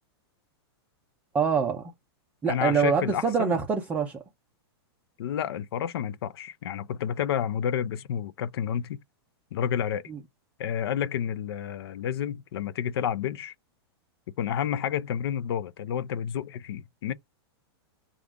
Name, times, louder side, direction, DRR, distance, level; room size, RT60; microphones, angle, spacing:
voice 1, 1.3-1.9 2.4-4.2 10.1-10.2, right 5 dB, 10° right, 0.4 m, -25 dB
voice 2, 2.5-3.5 5.2-9.0 9.5-10.0 10.6-13.5 14.4-17.1, left 9 dB, 65° left, 0.5 m, -30 dB
4.9 x 2.4 x 3.5 m
supercardioid pair, 160°, 14 cm